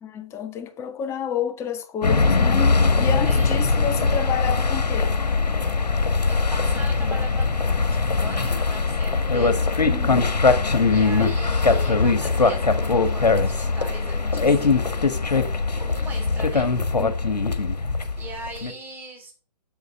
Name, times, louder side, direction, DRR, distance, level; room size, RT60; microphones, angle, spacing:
voice 1, 0.0-5.1 9.8-10.3 14.3-14.4 17.0-17.1, left 8 dB, 10° left, 0.9 m, -30 dB
sound 1, 2.0-18.7, left 4 dB, 75° left, 1.6 m, -21 dB
voice 2, 3.2-3.7 6.3-9.6 10.9-14.6 15.8-16.7 18.2-19.3, right 2 dB, 10° right, 2.8 m, -39 dB
8.1 x 7.7 x 6.6 m
figure-of-eight pair, 135°, 21 cm